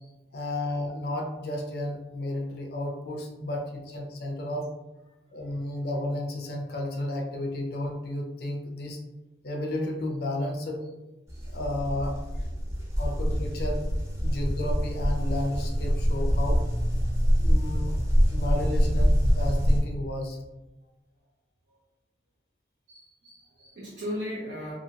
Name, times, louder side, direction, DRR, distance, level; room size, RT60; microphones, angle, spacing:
voice 1, 0.3-4.7 5.3-9.0 9.4-10.8 11.4-12.3 13.0-13.8 14.2-16.6 17.4-18.0 18.3-20.4, left 1 dB, 60° left, 1 dB, 0.5 m, -32 dB
sound 1, 11.3-19.8, equal, 15° right, 0.6 m, -25 dB
voice 2, 22.9-24.7, equal, 70° right, -8 dB, 0.7 m, -38 dB
2.7 x 2.7 x 2.7 m, 1.0 s
head